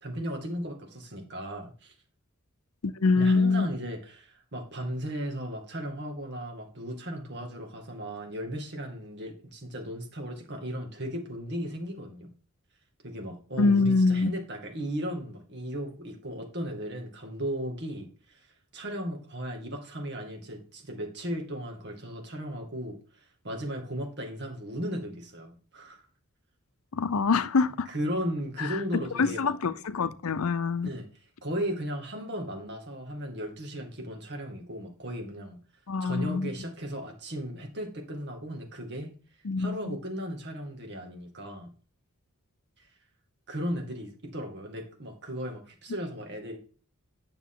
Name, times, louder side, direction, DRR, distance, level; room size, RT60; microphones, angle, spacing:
voice 1, 0.0-1.9 3.2-12.3 13.0-18.5 18.7-26.1 27.9-29.5 30.8-31.1 31.4-35.6 36.0-39.1 39.6-41.7 43.5-46.6, equal, 55° right, 2.3 m, -36 dB
voice 2, 2.8-3.7 13.6-14.3 26.9-27.9 28.6-28.8 29.2-30.9 35.9-36.5 39.4-40.0, left 4 dB, 80° left, 0.6 m, -25 dB
9.5 x 6.9 x 3.9 m
head